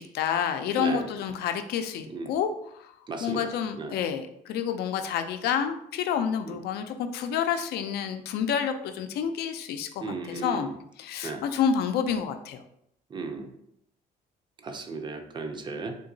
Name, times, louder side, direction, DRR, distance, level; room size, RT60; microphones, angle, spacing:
voice 1, 0.0-2.5 2.8-2.9 3.2-10.7 11.0-12.6, left 7 dB, 75° left, 7 dB, 0.4 m, -29 dB
voice 2, 3.1-4.0 6.4-6.6 10.0-10.7 11.2-11.4 13.1-13.5 14.6-16.0, right 4 dB, 25° right, 6 dB, 0.5 m, -35 dB
3.7 x 2.8 x 2.6 m, 0.74 s
cardioid pair, 110°, 17 cm